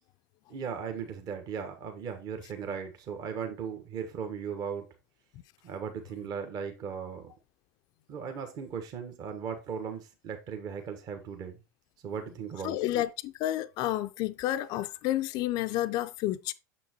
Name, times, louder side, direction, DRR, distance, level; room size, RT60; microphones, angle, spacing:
voice 1, 0.5-4.9 5.6-7.3 8.1-11.6 12.0-12.8, right 7 dB, 45° right, 1.2 m, -37 dB
voice 2, 12.6-16.5, left 14 dB, 45° left, 0.4 m, -30 dB
6.6 x 6.0 x 2.9 m
hypercardioid pair, 85°, 9 cm